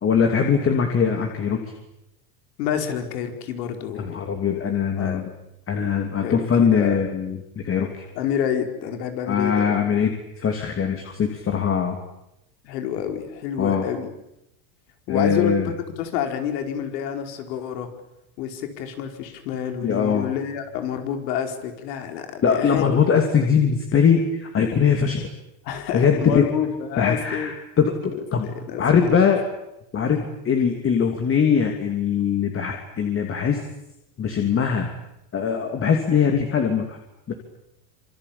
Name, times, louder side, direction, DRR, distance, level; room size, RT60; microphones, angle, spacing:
voice 1, 0.0-1.6 3.9-5.3 5.7-8.0 9.3-12.0 13.6-13.9 15.1-15.7 19.8-20.3 22.4-25.3 25.9-26.5 27.0-28.5 28.8-29.4 29.9-33.6 34.2-34.9 35.3-37.0 37.3-37.4, left 6 dB, 25° left, 4 dB, 3.1 m, -21 dB
voice 2, 2.6-4.3 5.0-5.2 6.2-7.1 8.2-9.8 12.6-14.1 15.1-17.9 18.4-23.0 25.6-27.5 28.1-29.3, left 9 dB, 75° left, 6 dB, 5.0 m, -28 dB
26.5 x 25.0 x 8.7 m, 0.86 s
supercardioid pair, 140°, 50 cm